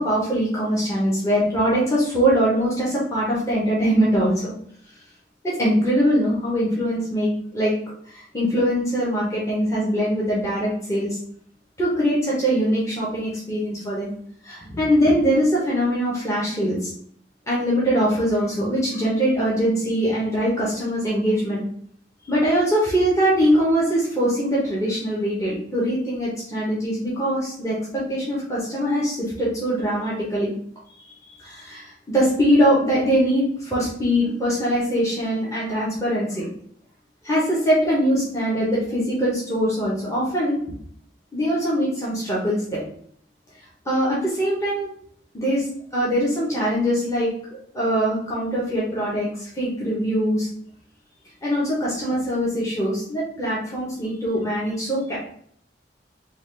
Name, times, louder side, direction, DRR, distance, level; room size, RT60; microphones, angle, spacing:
voice 1, 0.0-4.5 5.4-7.7 8.1-11.2 11.8-14.1 14.4-16.9 17.5-21.6 22.3-30.5 31.4-36.5 37.2-40.6 41.3-42.8 43.8-44.9 45.3-45.7 45.9-47.3 47.7-50.5 51.4-55.2, equal, 15° left, -7 dB, 1.0 m, -22 dB
3.9 x 2.4 x 3.3 m, 0.62 s
head